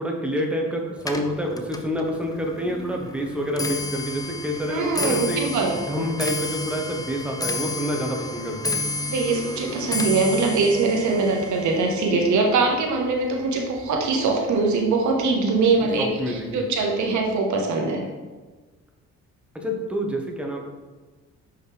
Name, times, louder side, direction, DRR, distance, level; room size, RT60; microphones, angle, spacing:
voice 1, 0.0-5.4 5.9-8.8 15.8-16.6 19.5-20.6, equal, 5° right, 0 dB, 1.2 m, -28 dB
Clock, 1.0-14.3 14.7-15.1 15.9-16.0 16.3-16.7 17.0-17.1, left 2 dB, 10° left, 0.5 m, -32 dB
voice 2, 4.7-5.8 9.0-18.1, right 3 dB, 75° right, 1 dB, 1.3 m, -22 dB
5.9 x 5.5 x 3.4 m, 1.3 s
cardioid pair, 90°, 30 cm